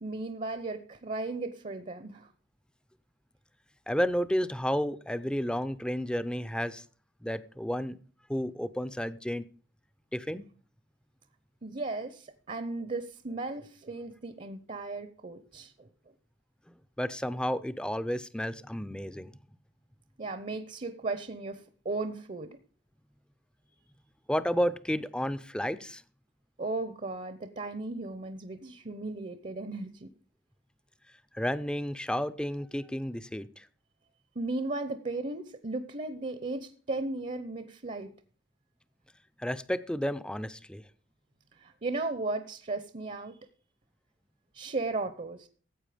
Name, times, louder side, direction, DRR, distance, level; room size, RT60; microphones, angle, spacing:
voice 1, 0.0-2.3 11.6-15.9 20.2-22.6 26.6-30.1 34.3-38.1 41.6-43.4 44.5-45.5, right 3 dB, 40° right, 0.8 m, -36 dB
voice 2, 3.9-6.8 7.2-8.0 8.3-9.4 10.1-10.4 17.0-19.3 24.3-26.0 31.3-33.7 39.4-40.8, equal, 5° left, 0.6 m, -31 dB
14.5 x 8.2 x 5.1 m
head